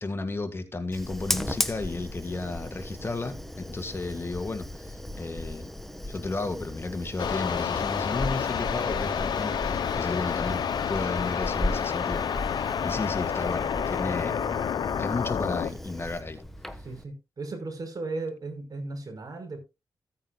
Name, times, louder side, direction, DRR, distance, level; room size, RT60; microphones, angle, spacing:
voice 1, 0.0-5.7 6.1-14.4 15.0-16.4, left 3 dB, 30° left, 1.7 m, -33 dB
Fire, 0.9-17.0, left 1 dB, 5° left, 1.2 m, -36 dB
sound 1, 7.2-15.7, left 7 dB, 85° left, 1.0 m, -29 dB
voice 2, 14.0-14.6 16.8-19.6, right 3 dB, 55° right, 5.1 m, -36 dB
15.5 x 8.9 x 2.3 m
cardioid pair, 70°, 7 cm